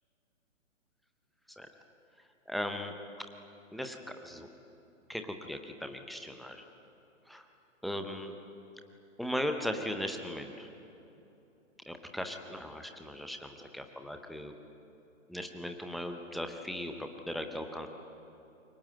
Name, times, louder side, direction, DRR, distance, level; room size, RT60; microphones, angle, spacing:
voice 1, 2.5-2.9 3.7-4.0 4.2-4.5 5.1-6.6 7.3-7.4 7.8-8.4 9.2-10.7 11.9-14.6 15.3-17.9, left 1 dB, ahead, 5 dB, 0.6 m, -38 dB
27.0 x 23.5 x 9.2 m, 3.0 s
figure-of-eight pair, 125°, 41 cm